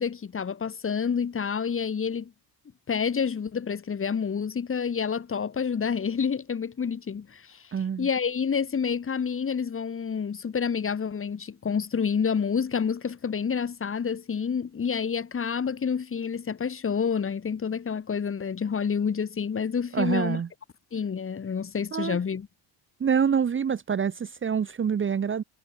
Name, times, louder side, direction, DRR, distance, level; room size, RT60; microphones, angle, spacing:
voice 1, 0.0-2.3 2.9-7.6 8.0-20.4 20.9-22.5, left 6 dB, 30° left, 3.0 m, -28 dB
voice 2, 7.7-8.1 19.9-20.5 21.9-22.2 23.0-25.4, right 7 dB, 30° right, 1.1 m, -26 dB
cardioid pair, 160°, 43 cm